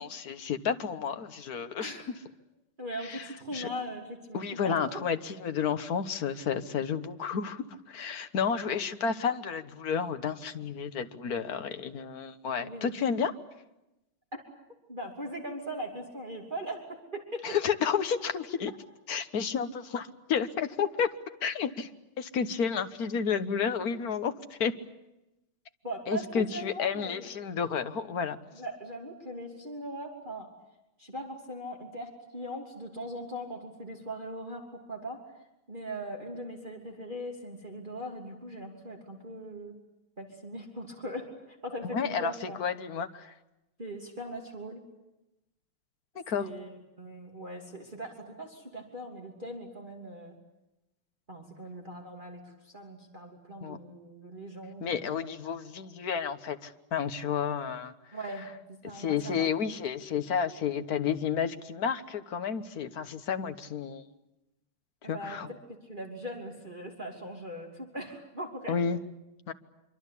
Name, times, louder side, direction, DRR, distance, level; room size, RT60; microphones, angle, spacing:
voice 1, 0.0-1.9 3.1-3.2 3.5-3.7 4.3-13.3 17.4-18.7 19.1-21.1 21.4-21.9 22.2-24.7 26.1-28.4 41.9-42.3 42.6-43.3 46.3-46.5 53.6-53.8 54.8-57.9 58.9-64.0 65.0-65.5 68.7-69.0 69.5-69.6, left 7 dB, 50° left, 9 dB, 1.5 m, -31 dB
voice 2, 1.8-2.1 2.8-4.8 12.6-12.9 14.3-14.4 14.9-17.6 25.8-27.3 28.5-30.5 31.0-35.2 35.7-39.7 40.2-42.6 43.8-44.8 46.3-50.4 51.3-55.1 58.1-58.5 58.8-59.5 65.0-65.4 65.8-68.8, right 1 dB, 20° right, 0 dB, 3.1 m, -40 dB
26.0 x 24.0 x 8.4 m, 0.94 s
omnidirectional pair, 2.3 m